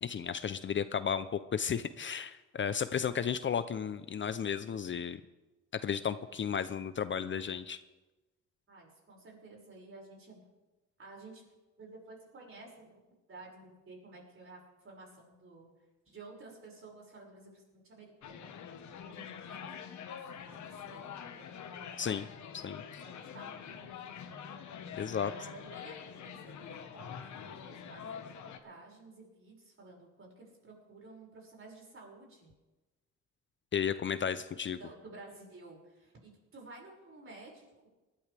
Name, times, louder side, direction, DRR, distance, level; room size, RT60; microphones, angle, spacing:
voice 1, 0.0-5.2 5.7-7.8 22.0-22.3 22.5-22.8 24.9-25.3 33.7-34.8, left 7 dB, 40° left, 12 dB, 0.6 m, -34 dB
voice 2, 8.7-10.4 11.0-11.4 11.8-15.7 16.0-18.6 19.1-21.5 23.0-24.5 25.1-27.2 27.4-32.5 34.8-37.9, right 2 dB, 45° right, -2 dB, 6.0 m, -53 dB
sound 1, 18.2-28.6, left 7 dB, 70° left, 1.4 m, -45 dB
19.5 x 13.0 x 3.5 m, 1.1 s
cardioid pair, 90°, 30 cm